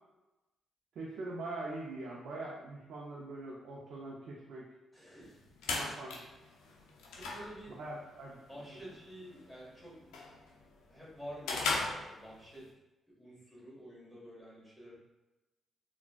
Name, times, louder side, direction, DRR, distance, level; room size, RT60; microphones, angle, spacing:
voice 1, 1.0-4.7 5.7-6.3 7.8-8.4 8.7-8.8, right 2 dB, 75° right, -4 dB, 0.5 m, -43 dB
voice 2, 4.9-5.4 7.1-7.9 8.5-10.4 10.9-12.7 13.1-14.9, equal, ahead, -6 dB, 1.5 m, -50 dB
sound 1, 5.2-12.7, left 3 dB, 90° left, 0.4 m, -40 dB
3.7 x 2.2 x 2.3 m, 1.0 s
supercardioid pair, 60°, 0 cm